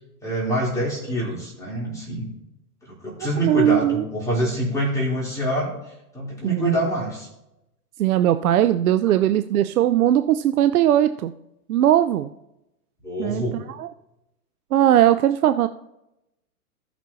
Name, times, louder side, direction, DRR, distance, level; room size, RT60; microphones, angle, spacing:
voice 1, 0.2-2.3 2.8-5.7 6.1-7.3 13.0-13.6, right 1 dB, 5° left, -6 dB, 3.3 m, -25 dB
voice 2, 3.4-4.1 6.4-6.7 8.0-11.3 11.7-12.3 13.2-13.9 14.7-15.7, right 11 dB, 70° right, 11 dB, 0.6 m, -19 dB
18.0 x 6.1 x 2.8 m, 0.88 s
hypercardioid pair, 125°, 46 cm